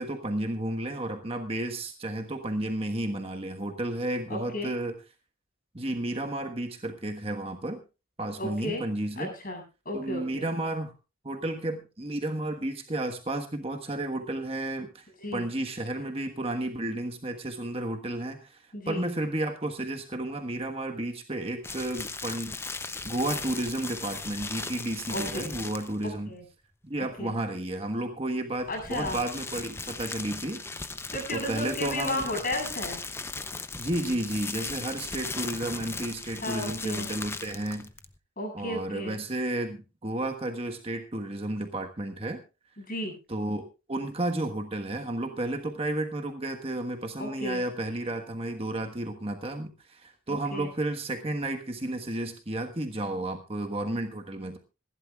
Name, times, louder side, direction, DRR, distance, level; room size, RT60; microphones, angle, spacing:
voice 1, 0.0-5.0 5.7-7.8 8.2-9.3 9.9-10.9 11.2-15.1 15.3-22.6 23.0-26.3 26.8-30.6 31.3-32.3 33.8-37.9 38.5-42.4 43.3-43.6 43.9-54.6, right 1 dB, 30° right, 5 dB, 1.4 m, -32 dB
voice 2, 4.3-4.7 8.4-8.8 9.2-10.5 15.2-15.5 18.7-19.1 25.1-25.6 26.3-26.4 27.2-27.3 28.7-29.2 31.1-33.0 36.4-37.1 38.4-39.2 42.8-43.1 47.2-47.6 50.3-50.7, left 1 dB, 45° left, 3 dB, 7.6 m, -34 dB
sound 1, 21.6-26.1 28.6-38.2, left 3 dB, 10° left, 0.6 m, -37 dB
26.0 x 12.0 x 2.4 m, 0.30 s
head